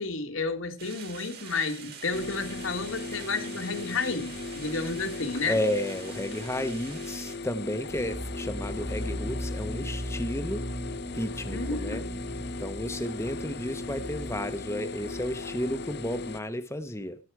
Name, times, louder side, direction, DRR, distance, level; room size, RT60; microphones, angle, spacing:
voice 1, 0.0-5.6 11.5-12.2, left 4 dB, 80° left, 1.6 m, -31 dB
sound 1, 0.8-7.4, right 7 dB, 50° right, 2.8 m, -46 dB
sound 2, 2.1-16.4, left 3 dB, 55° left, 0.7 m, -38 dB
voice 2, 5.5-10.7 11.1-12.0 12.6-17.2, left 1 dB, 15° left, 0.8 m, -32 dB
sound 3, 7.9-15.5, equal, 30° right, 1.9 m, -38 dB
16.5 x 7.1 x 4.7 m
head